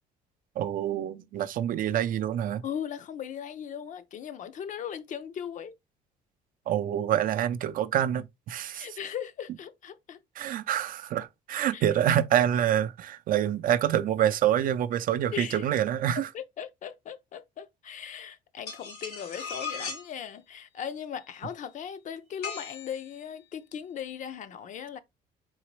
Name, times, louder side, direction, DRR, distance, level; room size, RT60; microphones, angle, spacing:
voice 1, 0.6-2.6 6.7-8.9 10.4-16.3, right 10 dB, 55° right, 0.4 m, -26 dB
voice 2, 2.6-5.8 8.7-10.2 11.7-11.8 15.3-15.6 16.1-25.0, left 8 dB, 50° left, 0.5 m, -38 dB
sound 1, 18.7-20.1 22.4-23.2, left 5 dB, 80° left, 2.1 m, -37 dB
4.0 x 2.9 x 3.1 m
cardioid pair, 110°, 17 cm